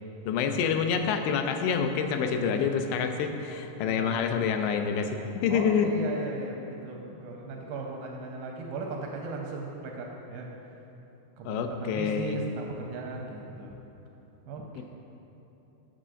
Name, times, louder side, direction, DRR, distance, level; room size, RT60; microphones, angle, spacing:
voice 1, 0.3-5.9 11.5-12.4 14.8-14.9, left 6 dB, 90° left, 6 dB, 2.8 m, -27 dB
voice 2, 3.8-4.1 5.5-10.5 11.4-13.7 14.5-14.8, right 3 dB, 85° right, 0 dB, 2.4 m, -37 dB
6.5 x 6.3 x 6.4 m, 3.0 s
omnidirectional pair, 4.8 m